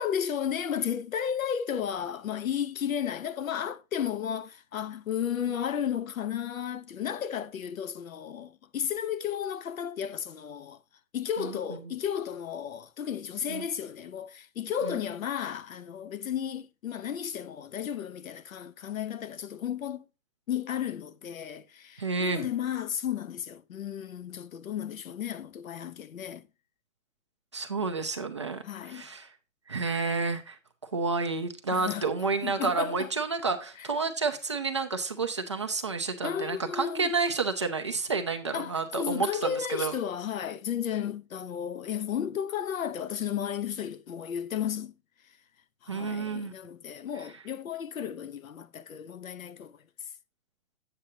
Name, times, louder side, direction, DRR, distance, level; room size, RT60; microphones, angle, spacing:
voice 1, 0.0-10.8 11.1-20.1 20.5-26.5 28.6-29.1 31.7-32.0 32.4-33.1 33.8-33.9 36.2-37.2 38.5-44.9 45.8-49.8, left 9 dB, 90° left, 0.9 m, -33 dB
voice 2, 22.0-22.5 27.5-29.3 29.7-30.6 30.9-39.9 45.9-46.5, right 4 dB, 25° right, 0.4 m, -30 dB
8.8 x 7.6 x 2.7 m
hypercardioid pair, 165°, 40 cm